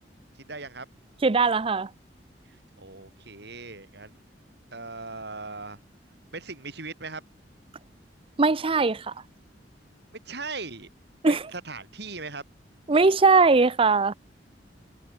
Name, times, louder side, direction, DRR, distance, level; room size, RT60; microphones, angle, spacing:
voice 1, 0.5-0.9 2.8-4.2 4.7-5.8 6.3-7.2 10.2-10.9 11.3-12.4, right 3 dB, 65° right, 6.8 m, -38 dB
voice 2, 1.2-1.9 8.4-9.1 11.2-11.4 12.9-14.1, right 4 dB, 30° right, 0.6 m, -20 dB
head